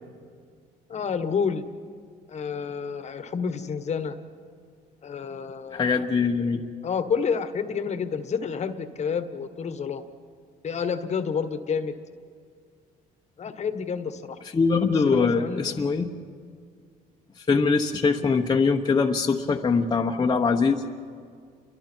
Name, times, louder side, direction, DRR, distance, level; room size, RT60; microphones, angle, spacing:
voice 1, 0.9-1.6 2.3-4.1 5.0-6.0 6.8-10.0 10.6-11.9 13.4-14.4 15.0-15.8, left 6 dB, 40° left, 10 dB, 1.4 m, -29 dB
voice 2, 5.7-6.6 14.5-16.1 17.4-20.8, left 4 dB, 25° left, 1 dB, 1.1 m, -22 dB
30.0 x 23.5 x 4.5 m, 2.1 s
cardioid pair, 110°, 17 cm